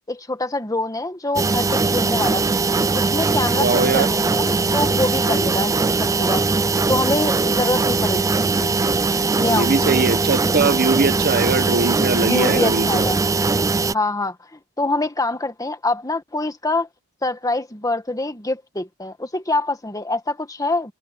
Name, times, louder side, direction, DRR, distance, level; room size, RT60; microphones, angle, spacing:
voice 1, 0.1-2.4 2.9-6.4 6.9-8.7 9.4-10.1 12.2-13.2 13.9-16.9 17.2-20.9, left 2 dB, 15° left, 1.7 m, -25 dB
sound 1, 1.4-13.9, right 3 dB, 15° right, 0.4 m, -20 dB
voice 2, 3.5-4.1 9.4-13.0, right 4 dB, 45° right, 1.0 m, -21 dB
head